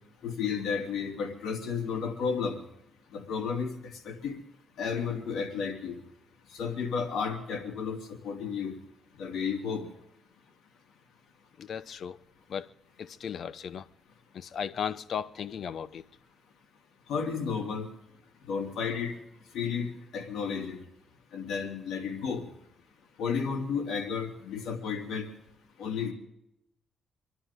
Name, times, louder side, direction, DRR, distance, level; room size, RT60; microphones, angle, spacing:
voice 1, 0.2-2.6 3.1-3.7 4.0-4.4 4.8-6.0 6.5-8.0 8.2-8.7 9.2-9.9 17.1-17.9 18.5-19.1 19.5-20.8 21.3-22.4 23.2-25.3 25.8-26.1, left 6 dB, 85° left, 3.1 m, -32 dB
voice 2, 11.6-12.2 12.5-12.7 13.0-13.9 14.3-16.0, left 7 dB, 60° left, 0.8 m, -36 dB
27.0 x 11.5 x 3.6 m
cardioid pair, 110°, 0 cm